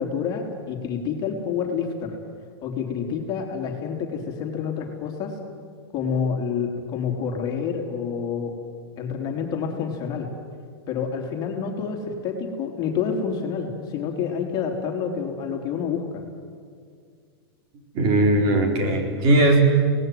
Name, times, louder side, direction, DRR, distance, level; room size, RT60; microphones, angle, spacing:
voice 1, 0.0-2.2 2.6-5.3 5.9-8.5 9.0-10.3 10.9-16.2, left 6 dB, 30° left, 2 dB, 3.3 m, -28 dB
voice 2, 17.9-19.6, right 1 dB, 35° right, 3 dB, 4.4 m, -19 dB
25.5 x 18.5 x 9.3 m, 2.1 s
supercardioid pair, 145°, 13 cm